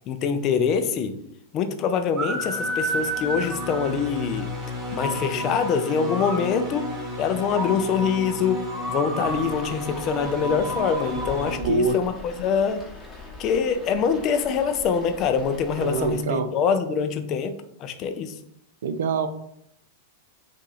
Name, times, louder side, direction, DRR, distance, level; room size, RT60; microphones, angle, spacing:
voice 1, 0.1-1.2 1.5-4.5 4.9-6.9 7.2-12.9 13.4-18.4, left 6 dB, 40° left, 9 dB, 0.4 m, -24 dB
sound 1, 2.2-11.6, equal, 25° right, 1.0 m, -30 dB
sound 2, 9.2-16.4, left 3 dB, 15° left, 1.0 m, -42 dB
voice 2, 11.6-12.0 15.8-16.5 18.8-19.3, right 4 dB, 70° right, 9 dB, 0.4 m, -24 dB
2.8 x 2.6 x 3.9 m, 0.72 s
hypercardioid pair, 100°, 0 cm